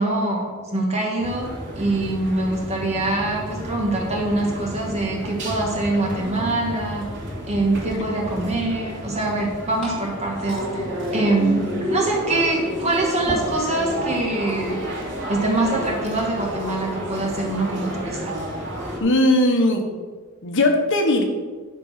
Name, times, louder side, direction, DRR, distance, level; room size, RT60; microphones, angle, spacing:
voice 1, 0.0-1.5 1.8-7.1 7.4-10.8 11.1-11.6 11.9-14.8 15.3-18.3, right 2 dB, 30° right, -2 dB, 2.2 m, -24 dB
sound 1, 1.2-19.0, equal, 55° right, 2.5 m, -31 dB
Glass / Fill (with liquid), 9.3-16.4, right 1 dB, 5° left, 2.4 m, -40 dB
voice 2, 19.0-19.9 20.4-21.2, left 1 dB, 60° left, 3 dB, 1.3 m, -18 dB
10.0 x 5.3 x 5.9 m, 1.4 s
head